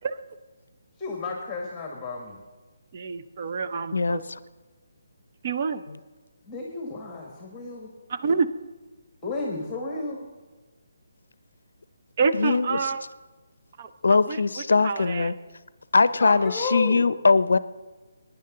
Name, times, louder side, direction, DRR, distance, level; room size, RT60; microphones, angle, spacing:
voice 1, 1.0-2.4 6.4-7.9 9.2-10.3 16.2-17.1, left 3 dB, 15° left, 1 dB, 1.6 m, -32 dB
voice 2, 2.9-4.2 5.4-5.8 8.1-8.5 12.2-13.0 13.8-14.4 14.8-15.3, right 5 dB, 40° right, 8 dB, 0.7 m, -27 dB
voice 3, 3.9-4.4 12.3-12.9 14.0-15.3 15.9-17.6, left 4 dB, 70° left, 17 dB, 0.5 m, -21 dB
18.5 x 10.0 x 3.8 m, 1.3 s
figure-of-eight pair, 150°, 0 cm